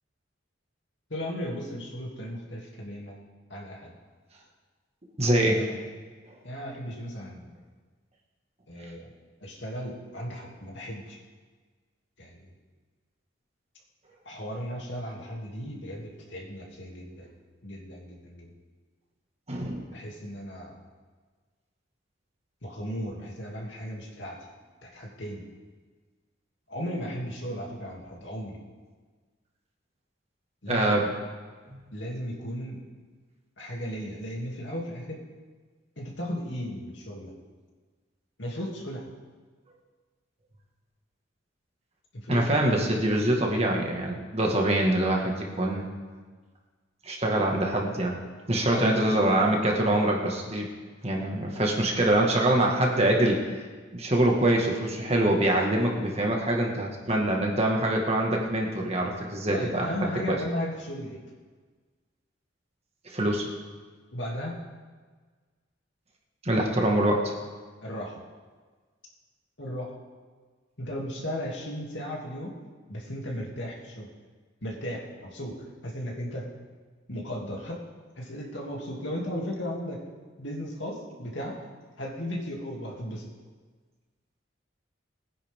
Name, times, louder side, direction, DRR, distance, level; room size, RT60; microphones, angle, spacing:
voice 1, 1.1-3.2 3.5-3.9 5.4-5.8 6.4-7.5 8.7-9.1 9.4-11.2 12.2-12.5 14.2-17.3 17.6-18.5 19.9-20.8 22.6-24.4 24.8-25.4 26.7-28.6 30.6-31.0 31.9-32.8 33.6-35.2 36.0-37.3 38.4-39.1 42.1-42.9 48.7-49.0 59.5-61.2 64.1-64.6 67.8-68.2 69.6-69.9 70.8-72.5 72.9-74.1 74.6-75.6 75.8-76.4 77.1-77.8 78.2-80.0 80.4-81.6 82.0-83.3, equal, 65° left, -2 dB, 2.7 m, -36 dB
voice 2, 5.2-5.6 19.5-19.8 30.7-31.1 42.3-45.9 47.1-48.2 48.5-50.7 51.0-53.4 53.9-60.4 63.1-63.5 66.4-67.3, right 1 dB, 30° right, 0 dB, 1.8 m, -24 dB
21.5 x 10.0 x 3.7 m, 1.4 s
head